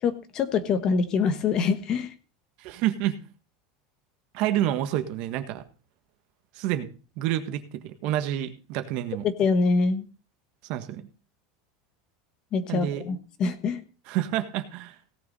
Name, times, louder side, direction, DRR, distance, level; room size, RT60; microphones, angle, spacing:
voice 1, 0.0-2.1 9.4-10.1 12.5-13.8, left 4 dB, 30° left, 11 dB, 1.3 m, -25 dB
voice 2, 2.6-3.2 4.3-5.6 6.5-6.9 7.2-9.2 10.7-11.1 12.7-13.0 14.1-15.0, right 12 dB, 45° right, 9 dB, 1.5 m, -28 dB
17.0 x 6.9 x 5.5 m, 0.35 s
supercardioid pair, 170°, 2 cm